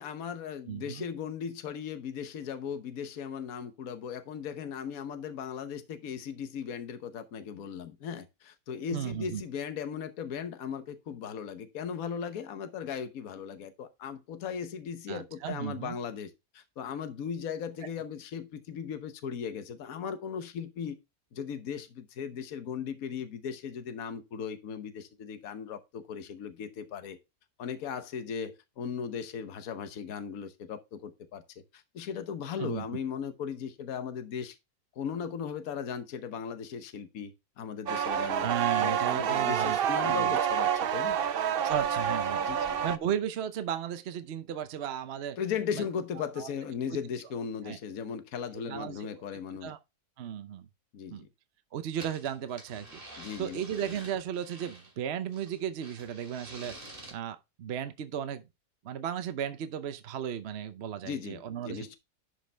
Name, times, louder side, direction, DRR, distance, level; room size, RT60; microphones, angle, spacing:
voice 1, 0.0-21.0 21.3-27.2 27.6-34.6 35.0-38.5 38.8-41.2 42.4-42.8 45.4-49.7 50.9-51.3 53.2-53.6 61.0-62.0, left 7 dB, 60° left, 1.4 m, -37 dB
voice 2, 0.7-1.1 8.9-9.4 15.1-16.0 32.6-32.9 38.4-40.4 41.6-45.4 45.7-45.9 46.4-46.5 47.6-47.8 48.5-49.1 49.6-49.8 50.2-50.7 51.1-51.3 51.7-58.4 58.8-61.9, right 9 dB, 55° right, 0.7 m, -35 dB
sound 1, 37.9-43.0, right 9 dB, 90° right, 0.5 m, -28 dB
sound 2, 51.9-54.9 55.3-57.1, right 1 dB, 35° right, 2.5 m, -48 dB
11.5 x 5.2 x 3.3 m
omnidirectional pair, 1.7 m